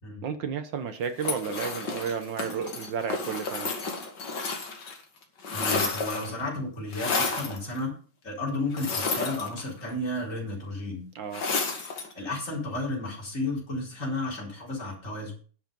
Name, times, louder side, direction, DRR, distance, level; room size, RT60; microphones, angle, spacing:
voice 1, 0.2-3.7 11.1-11.4, right 7 dB, 65° right, 9 dB, 1.6 m, -32 dB
sound 1, 1.2-5.0 5.2-6.4 6.9-7.6 8.7-9.9 11.3-12.1, left 4 dB, 55° left, 2.4 m, -31 dB
voice 2, 5.5-7.9 8.2-11.0 12.1-15.3, left 2 dB, 35° left, -3 dB, 4.7 m, -32 dB
10.5 x 7.6 x 5.3 m, 0.41 s
omnidirectional pair, 2.4 m